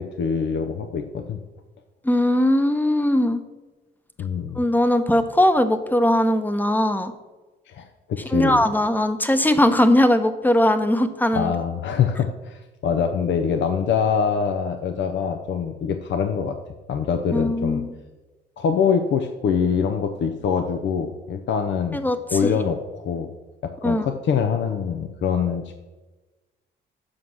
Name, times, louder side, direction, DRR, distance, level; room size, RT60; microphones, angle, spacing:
voice 1, 0.0-1.4 4.2-4.6 7.7-8.6 11.3-16.6 16.9-17.8 18.6-22.0 22.3-23.3 23.6-25.7, left 6 dB, 65° left, 7 dB, 0.8 m, -24 dB
voice 2, 2.0-3.4 4.6-7.1 8.3-11.5 17.3-17.9 21.9-22.2 22.4-22.5 23.8-24.1, left 1 dB, 10° left, 10 dB, 0.9 m, -19 dB
7.5 x 5.8 x 6.3 m, 1.2 s
cardioid pair, 90°, 20 cm